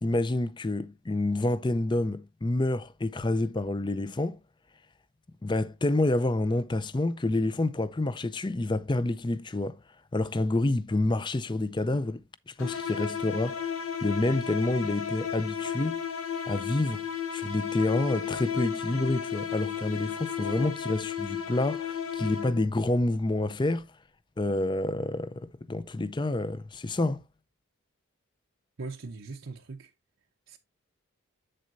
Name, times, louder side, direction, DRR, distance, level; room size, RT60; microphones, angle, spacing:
voice 1, 0.0-4.4 5.4-9.8 10.1-13.7 14.0-16.0 16.5-17.1 17.3-23.9 24.4-27.2, left 2 dB, 20° left, 0.5 m, -28 dB
sound 1, 12.6-22.8, left 8 dB, 80° left, 1.2 m, -33 dB
voice 2, 28.8-29.9 30.5-30.6, right 3 dB, 60° right, 0.7 m, -40 dB
8.0 x 7.6 x 2.6 m
head